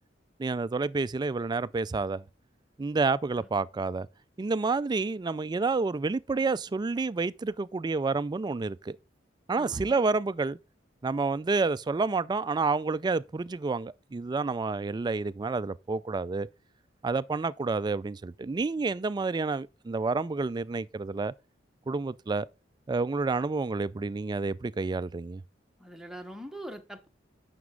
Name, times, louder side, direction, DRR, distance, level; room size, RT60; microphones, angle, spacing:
voice 1, 0.4-2.2 2.8-4.1 4.4-9.0 9.5-10.6 11.0-16.5 17.0-21.3 21.9-22.5 22.9-25.4, right 3 dB, 25° right, 0.3 m, -29 dB
voice 2, 9.5-10.0 25.8-27.1, right 1 dB, 5° right, 1.0 m, -43 dB
9.4 x 6.0 x 3.7 m
head